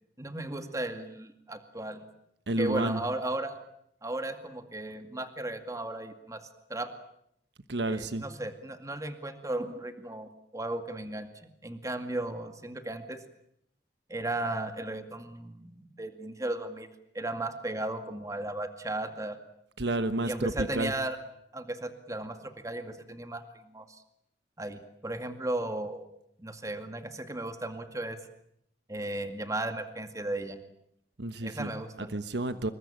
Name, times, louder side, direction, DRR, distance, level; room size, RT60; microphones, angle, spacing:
voice 1, 0.2-2.0 2.6-3.5 4.0-6.4 6.7-6.9 7.9-11.3 11.6-13.2 14.1-16.9 17.1-19.4 20.2-21.2 21.5-24.0 24.6-26.1 26.4-28.2 28.9-30.6 31.4-32.1, right 1 dB, 20° right, 7 dB, 2.1 m, -35 dB
voice 2, 2.5-3.0 7.7-8.2 19.8-20.9 31.2-31.7 32.0-32.7, right 2 dB, 75° right, 11 dB, 1.3 m, -30 dB
27.0 x 22.0 x 9.0 m, 0.75 s
head